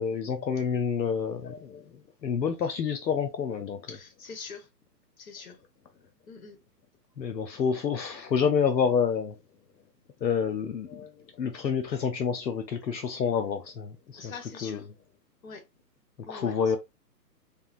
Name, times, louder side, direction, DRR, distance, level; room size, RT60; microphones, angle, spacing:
voice 1, 0.0-1.8 2.2-3.8 7.2-9.3 10.2-11.1 11.4-13.9 14.2-14.3 14.6-14.8 16.3-16.8, left 6 dB, 85° left, 0.7 m, -28 dB
voice 2, 3.9-4.7 5.2-5.6 6.3-6.6 14.2-14.8 15.4-15.6 16.3-16.7, left 5 dB, 55° left, 1.2 m, -43 dB
3.4 x 2.0 x 2.5 m
figure-of-eight pair, 135°, 50 cm